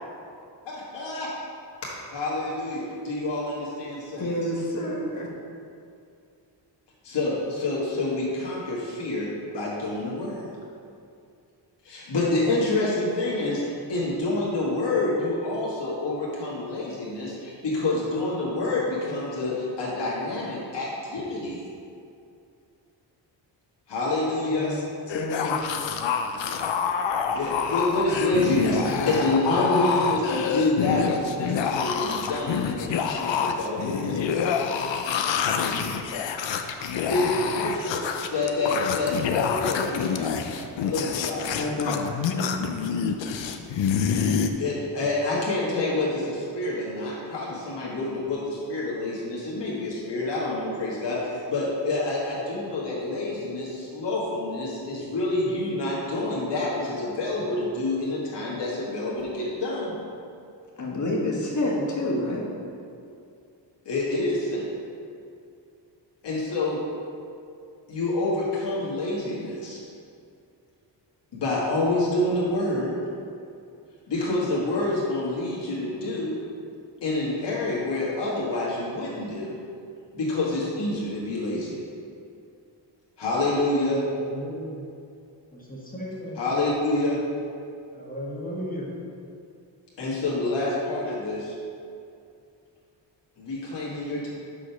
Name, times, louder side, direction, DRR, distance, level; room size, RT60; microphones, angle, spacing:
voice 1, 0.6-1.3 1.8-4.3 7.0-9.3 9.5-10.5 11.8-21.6 23.9-24.7 27.3-34.3 36.8-41.6 44.6-59.9 63.8-64.7 66.2-66.8 67.9-69.8 71.3-73.0 74.1-76.4 77.0-79.5 80.1-81.8 83.2-84.0 86.4-87.2 90.0-91.6 93.4-94.3, left 2 dB, 70° left, -7 dB, 1.7 m, -27 dB
voice 2, 4.2-5.3 24.5-24.8 25.1-25.7 41.5-42.5 60.8-62.5, left 1 dB, 40° left, -3 dB, 1.4 m, -28 dB
sound 1, 25.1-44.5, left 6 dB, 85° left, 0.6 m, -27 dB
voice 3, 84.0-84.8 85.5-86.4 87.9-88.9, equal, 20° left, -4 dB, 1.3 m, -35 dB
6.2 x 5.2 x 5.7 m, 2.5 s
wide cardioid pair, 135°, 43 cm